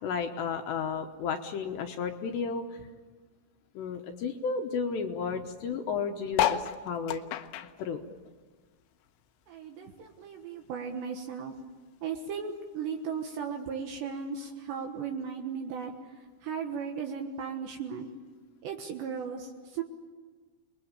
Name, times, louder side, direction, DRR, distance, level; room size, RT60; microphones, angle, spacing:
voice 1, 0.0-2.8 3.7-7.2 7.8-8.0, left 5 dB, 70° left, 4 dB, 3.0 m, -33 dB
sound 1, 6.3-9.1 9.4-10.9 11.4-11.5 11.7-11.8 12.0-12.4 13.2-13.3, left 11 dB, 90° left, 3.6 m, -32 dB
voice 2, 9.5-11.5 12.0-15.9 16.4-18.1 18.6-19.8, right 6 dB, 70° right, 3 dB, 3.4 m, -36 dB
29.0 x 21.5 x 8.8 m, 1.4 s
omnidirectional pair, 5.6 m